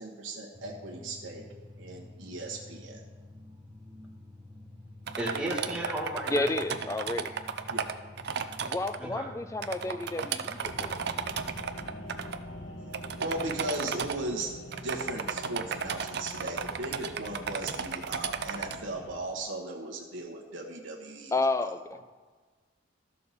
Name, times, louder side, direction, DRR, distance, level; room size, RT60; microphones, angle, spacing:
voice 1, 0.0-1.4 1.8-3.0 7.7-7.9 13.2-21.3, right 2 dB, 85° right, -2 dB, 1.2 m, -37 dB
sound 1, 0.5-13.7, left 2 dB, 20° right, 1.2 m, -49 dB
sound 2, 5.1-9.0 9.6-12.4 12.9-14.2 14.7-18.8, right 6 dB, 55° right, 0.5 m, -34 dB
voice 2, 5.2-6.5 9.0-9.3 9.8-10.0, right 1 dB, 5° right, -2 dB, 1.5 m, -34 dB
voice 3, 6.3-7.3 8.6-11.0 21.3-22.0, left 2 dB, 15° left, 10 dB, 0.4 m, -31 dB
sound 3, 10.6-19.2, left 1 dB, 75° left, 1.0 m, -45 dB
13.0 x 6.6 x 4.2 m, 1.4 s
head